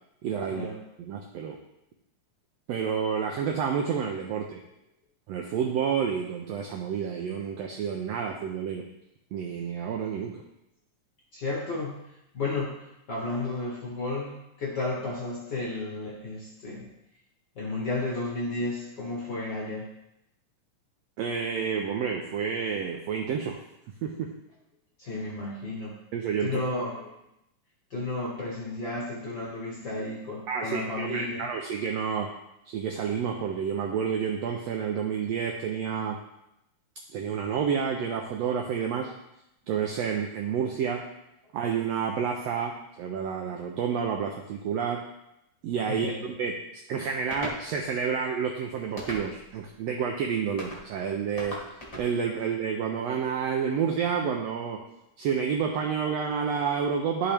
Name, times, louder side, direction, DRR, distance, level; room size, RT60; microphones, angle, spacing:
voice 1, 0.2-0.7 1.0-1.6 2.7-4.6 5.3-8.8 9.3-10.4 21.2-23.6 24.0-24.3 26.1-26.6 30.5-32.3 32.7-36.2 37.1-39.1 39.7-41.0 41.5-45.0 45.6-46.6 46.9-51.6 52.0-54.8 55.2-57.3, right 7 dB, 80° right, 2 dB, 1.5 m, -29 dB
voice 2, 11.3-14.3 14.6-16.9 17.5-19.9 25.0-26.0 26.4-27.1 27.9-31.5 45.9-46.2, left 2 dB, 55° left, -4 dB, 1.3 m, -33 dB
sound 1, 47.3-47.6 49.0-49.5 50.6-50.8 51.4-52.1, equal, 30° left, 0.7 m, -37 dB
11.5 x 5.1 x 3.4 m, 0.86 s
omnidirectional pair, 3.6 m